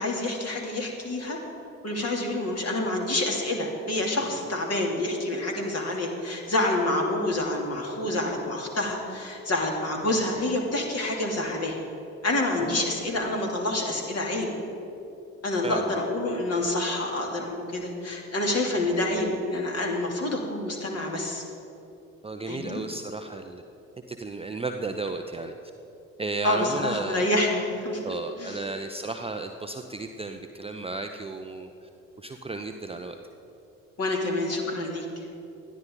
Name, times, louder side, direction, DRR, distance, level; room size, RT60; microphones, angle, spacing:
voice 1, 0.0-1.4 1.8-11.8 12.2-14.5 15.4-21.4 22.5-22.8 26.4-28.0 28.4-28.6 34.0-35.2, left 1 dB, 35° left, 0 dB, 2.9 m, -27 dB
voice 2, 15.6-16.0 22.2-23.6 24.1-25.5 26.2-27.3 28.0-31.9 32.2-33.2, right 3 dB, 15° right, 5 dB, 0.7 m, -34 dB
20.5 x 13.5 x 3.9 m, 2.8 s
figure-of-eight pair, 50°, 41 cm